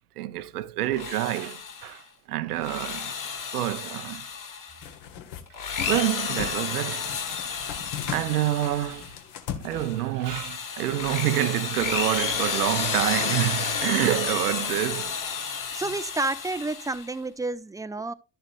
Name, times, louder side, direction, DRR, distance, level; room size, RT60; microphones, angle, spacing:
voice 1, 0.2-2.0 2.3-3.1 3.5-4.3 5.9-7.1 8.1-9.1 9.6-15.1, right 14 dB, 85° right, 0.7 m, -27 dB
Drill, 0.8-2.0 2.5-4.9 5.5-9.2 9.7-17.1, left 6 dB, 45° left, 2.5 m, -31 dB
sound 1, 4.8-5.4 5.8-6.6 7.0-10.2, left 9 dB, 60° left, 1.5 m, -37 dB
voice 2, 15.7-18.1, right 2 dB, 10° right, 0.3 m, -30 dB
11.0 x 6.7 x 2.5 m
hypercardioid pair, 70°, 45 cm